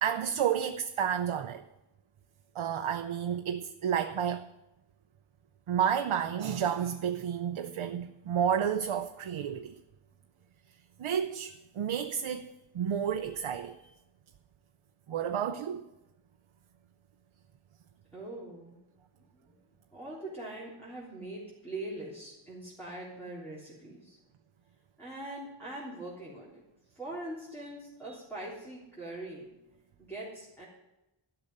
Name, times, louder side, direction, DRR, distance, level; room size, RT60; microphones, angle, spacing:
voice 1, 0.0-1.6 2.5-4.5 5.7-9.8 11.0-13.9 15.1-15.8, right 8 dB, 80° right, 0.7 m, -31 dB
voice 2, 18.1-18.8 19.4-19.5 19.9-24.2 25.0-26.6 26.9-29.5 30.0-30.6, right 1 dB, 5° left, 3.6 m, -42 dB
12.5 x 6.8 x 10.0 m
wide cardioid pair, 130°, 50 cm